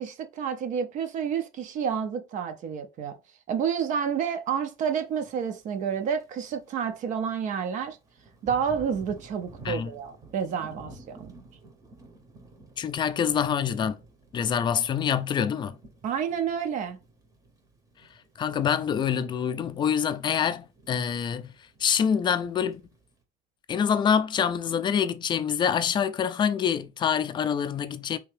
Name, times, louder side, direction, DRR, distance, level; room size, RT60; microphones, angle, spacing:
voice 1, 0.0-3.2 3.5-8.0 8.4-11.3 16.0-17.0, right 7 dB, 50° right, 0.5 m, -29 dB
Thunder / Rain, 5.1-23.2, right 3 dB, 20° right, 0.7 m, -52 dB
voice 2, 12.8-14.0 14.3-15.8 18.4-21.5 21.8-22.8 23.7-28.2, left 8 dB, 25° left, 0.3 m, -26 dB
3.4 x 2.7 x 3.3 m
cardioid pair, 140°, 17 cm